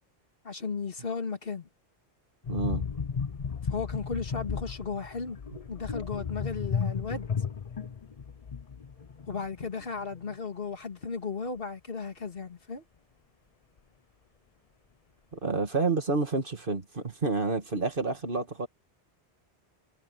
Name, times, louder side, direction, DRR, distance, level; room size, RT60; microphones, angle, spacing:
voice 1, 0.4-1.7 3.7-5.4 5.7-7.3 9.3-12.8, left 5 dB, 60° left, 2.2 m, -35 dB
sound 1, 2.4-9.9 10.1-10.3, left 6 dB, 40° left, 0.7 m, -34 dB
voice 2, 2.5-2.9 15.3-18.7, right 3 dB, 55° right, 2.2 m, -29 dB
omnidirectional pair, 1.1 m